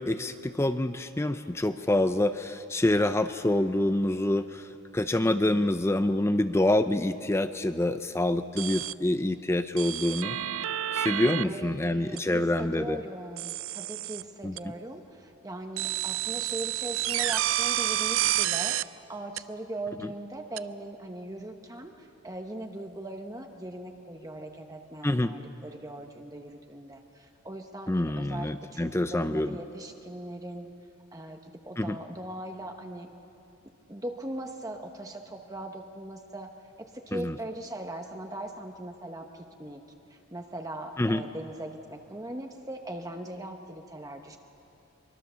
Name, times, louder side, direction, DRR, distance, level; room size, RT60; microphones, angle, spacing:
voice 1, 0.0-4.7 4.9-10.4 10.9-13.0 14.4-14.6 25.0-25.3 27.9-29.6 31.8-32.0 37.1-37.3 41.0-41.2, left 1 dB, 10° left, 10 dB, 0.4 m, -26 dB
voice 2, 5.2-5.7 11.0-30.7 31.1-33.1 33.9-36.5 36.8-39.8 40.1-44.4, right 1 dB, 15° right, 4 dB, 0.9 m, -40 dB
sound 1, 8.6-8.9 9.8-11.4 12.2-12.3 13.4-14.2 14.6-14.7 15.8-18.8 19.4-19.5 20.6-20.7, right 13 dB, 65° right, 0.4 m, -29 dB
24.0 x 22.5 x 6.9 m, 2.8 s
head